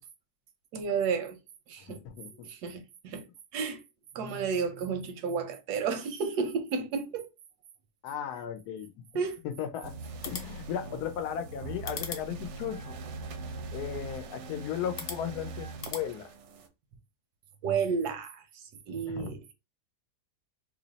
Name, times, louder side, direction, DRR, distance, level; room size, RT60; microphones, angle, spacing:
voice 1, 0.7-1.4 1.7-2.0 2.3-3.2 3.5-3.8 4.1-7.3 9.1-9.4 17.6-19.4, right 5 dB, 85° right, 1.2 m, -32 dB
voice 2, 1.9-2.5 8.0-8.9 9.4-10.0 10.2-12.9 13.7-16.3 19.1-19.3, left 9 dB, 85° left, 1.1 m, -36 dB
sound 1, 9.8-16.7, right 3 dB, 65° right, 0.7 m, -42 dB
sound 2, 10.1-16.1, left 6 dB, 55° left, 0.9 m, -45 dB
3.1 x 2.0 x 3.9 m
omnidirectional pair, 1.6 m